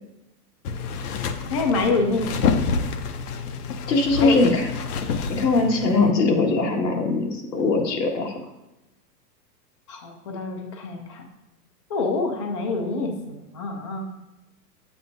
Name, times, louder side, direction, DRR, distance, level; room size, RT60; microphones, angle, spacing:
sound 1, 0.6-6.1, left 5 dB, 65° left, 0.8 m, -28 dB
voice 1, 1.5-2.3 4.2-4.4 9.9-11.2 11.9-14.1, left 3 dB, 20° left, 3 dB, 0.3 m, -26 dB
voice 2, 3.9-4.7 5.3-8.3, left 3 dB, 90° left, 0 dB, 2.0 m, -21 dB
9.4 x 7.7 x 2.6 m, 0.97 s
hypercardioid pair, 145°, 48 cm